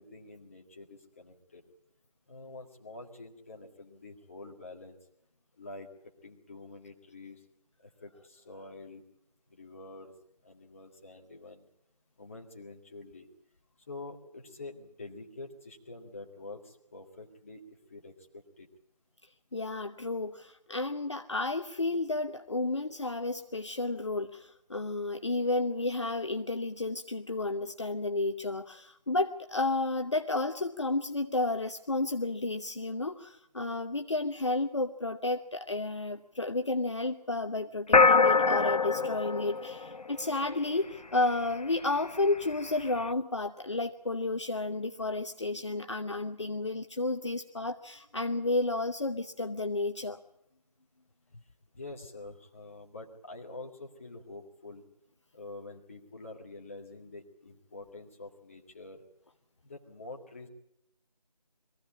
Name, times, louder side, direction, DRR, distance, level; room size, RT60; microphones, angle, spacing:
voice 1, 0.0-1.6 2.3-5.0 5.6-5.9 6.2-7.4 7.8-9.0 9.5-10.1 10.4-11.7 12.2-13.3 13.9-18.7 51.8-54.8 55.3-59.0 59.6-60.5, left 2 dB, 20° left, 0 dB, 1.9 m, -47 dB
voice 2, 19.5-50.2, left 2 dB, 45° left, 6 dB, 0.9 m, -32 dB
sound 1, 37.9-40.6, left 4 dB, 75° left, 0.8 m, -23 dB
23.0 x 15.5 x 8.5 m, 0.82 s
figure-of-eight pair, 165°, 20 cm